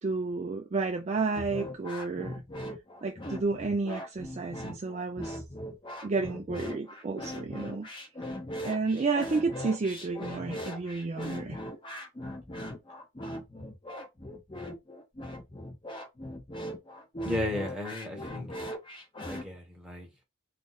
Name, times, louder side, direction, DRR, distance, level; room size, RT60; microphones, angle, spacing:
voice 1, 0.0-2.4 3.0-5.4 6.0-7.9 8.6-11.6, right 4 dB, 30° right, 0.3 m, -31 dB
sound 1, 1.3-19.4, left 1 dB, 25° left, 0.7 m, -39 dB
voice 2, 17.2-18.5 19.3-20.1, left 1 dB, 5° right, 0.9 m, -34 dB
2.5 x 2.5 x 3.9 m
head